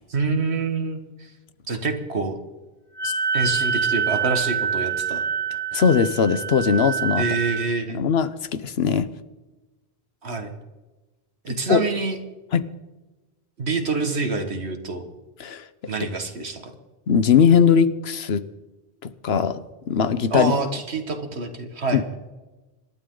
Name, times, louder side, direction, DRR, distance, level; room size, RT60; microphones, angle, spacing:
voice 1, 0.1-1.3 1.7-2.4 3.0-5.2 7.2-8.0 10.2-10.5 11.4-12.2 13.6-15.0 15.9-16.7 20.3-22.0, right 3 dB, 80° right, 6 dB, 2.0 m, -26 dB
Wind instrument woodwind instrument, 3.0-7.7, right 7 dB, 25° right, 2.0 m, -26 dB
voice 2, 5.7-7.2 7.9-9.1 11.5-11.8 12.5-12.6 15.4-15.9 17.1-18.4 19.0-20.5 21.9-22.0, left 7 dB, 70° left, 13 dB, 1.1 m, -20 dB
27.0 x 12.0 x 3.9 m, 1.2 s
omnidirectional pair, 1.1 m